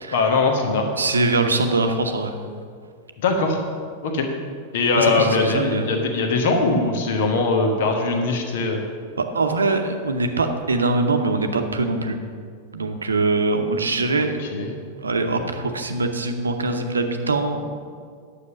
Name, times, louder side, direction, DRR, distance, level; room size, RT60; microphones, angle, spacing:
voice 1, 0.1-0.9 3.2-3.7 4.0-4.3 4.7-8.9 14.4-14.7, left 3 dB, 55° left, 3 dB, 1.3 m, -21 dB
voice 2, 1.0-2.4 4.9-5.9 9.3-12.2 12.7-14.4 15.0-17.7, right 3 dB, 75° right, 6 dB, 0.8 m, -22 dB
9.7 x 6.9 x 5.8 m, 2.1 s
figure-of-eight pair, 90°, 0 cm